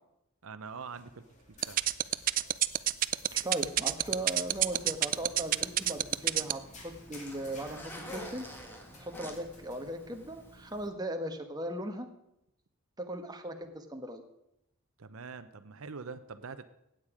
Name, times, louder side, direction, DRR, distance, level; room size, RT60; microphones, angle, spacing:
voice 1, 0.4-1.8 15.0-16.7, right 5 dB, 80° right, 11 dB, 0.7 m, -44 dB
sound 1, 0.6-10.6, left 2 dB, 35° left, 2.5 m, -54 dB
sound 2, 1.6-6.5, right 13 dB, 40° right, 0.4 m, -26 dB
voice 2, 3.3-8.5 9.0-12.1 13.0-14.2, right 1 dB, 20° right, 5 dB, 1.2 m, -38 dB
Zipper (clothing), 4.0-10.9, equal, 10° left, 1.7 m, -49 dB
16.0 x 9.0 x 4.9 m, 0.82 s
head